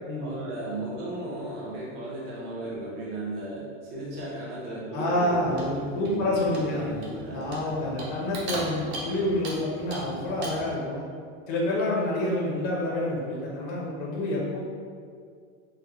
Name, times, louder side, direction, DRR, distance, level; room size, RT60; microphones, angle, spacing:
voice 1, 0.2-5.7 6.0-7.9 12.6-12.8, right 1 dB, 25° right, -6 dB, 0.5 m, -35 dB
voice 2, 4.9-6.9 7.3-11.0 11.5-14.6, left 1 dB, 35° left, -5 dB, 0.5 m, -28 dB
Clock, 5.3-10.8, right 2 dB, 60° right, 0.8 m, -39 dB
4.0 x 2.0 x 2.8 m, 2.2 s
supercardioid pair, 150°, 38 cm